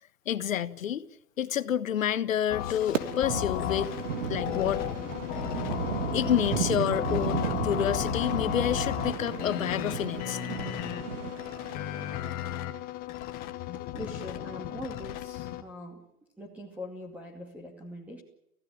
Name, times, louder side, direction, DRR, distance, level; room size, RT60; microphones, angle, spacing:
voice 1, 0.2-1.1 1.4-3.9 4.3-4.8 6.1-10.4, left 10 dB, 60° left, 1.5 m, -29 dB
sound 1, 2.5-15.6, left 12 dB, 20° left, 1.4 m, -34 dB
sound 2, 2.9-12.3, right 8 dB, 55° right, 1.9 m, -35 dB
voice 2, 13.7-16.0 16.4-18.2, left 1 dB, 5° right, 2.4 m, -42 dB
27.5 x 16.0 x 8.9 m
hypercardioid pair, 140°, 45 cm